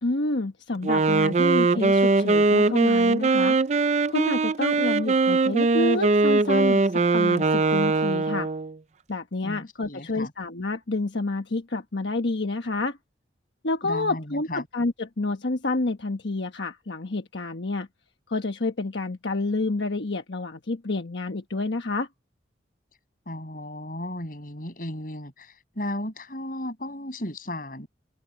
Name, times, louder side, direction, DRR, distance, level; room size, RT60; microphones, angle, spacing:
voice 1, 0.0-3.6 4.1-8.5 9.1-13.0 13.6-17.9 18.3-22.1, left 2 dB, 75° left, 1.2 m, -29 dB
Wind instrument woodwind instrument, 0.8-8.8, right 3 dB, 40° right, 0.4 m, -21 dB
voice 2, 9.4-10.3 13.8-14.6 23.3-27.9, left 1 dB, 50° left, 6.4 m, -35 dB
open air
head